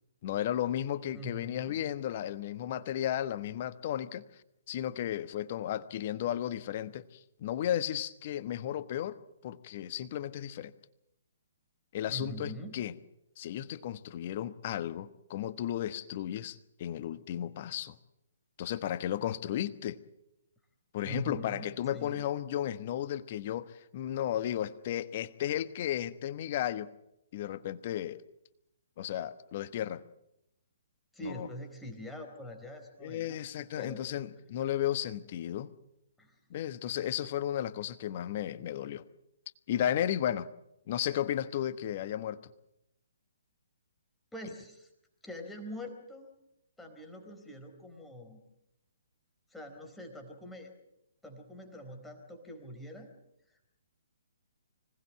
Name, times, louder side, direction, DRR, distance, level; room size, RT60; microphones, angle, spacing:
voice 1, 0.2-4.2 4.7-9.2 9.4-10.7 11.9-12.9 13.4-18.0 18.6-20.0 20.9-26.9 27.3-28.2 29.0-30.0 31.2-31.5 33.0-35.7 36.5-39.0 39.7-40.5 40.9-42.4, left 11 dB, 40° left, 13 dB, 1.2 m, -34 dB
voice 2, 1.1-1.8 12.1-12.8 21.0-22.2 31.1-33.5 33.8-34.1 36.2-36.4 44.3-44.9 45.2-46.3 46.8-48.4 49.5-50.7 51.2-53.1 53.5-53.7, equal, 5° left, 2 dB, 4.3 m, -44 dB
25.5 x 18.5 x 7.6 m, 0.83 s
figure-of-eight pair, 130°, 0 cm